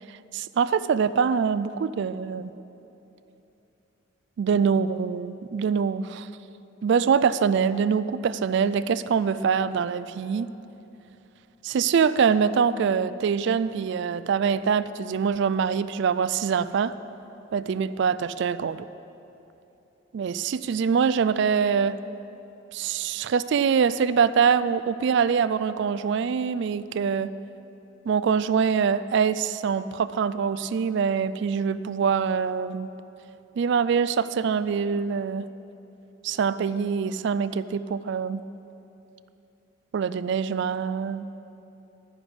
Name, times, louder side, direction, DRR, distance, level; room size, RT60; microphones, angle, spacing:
voice 1, 0.3-2.5 4.4-6.3 6.8-10.5 11.6-16.9 17.5-18.9 20.1-22.0 22.7-27.3 28.1-32.9 33.6-35.5 36.2-38.4 39.9-41.2, right 6 dB, 60° right, 15 dB, 0.3 m, -24 dB
11.0 x 9.8 x 5.3 m, 3.0 s
head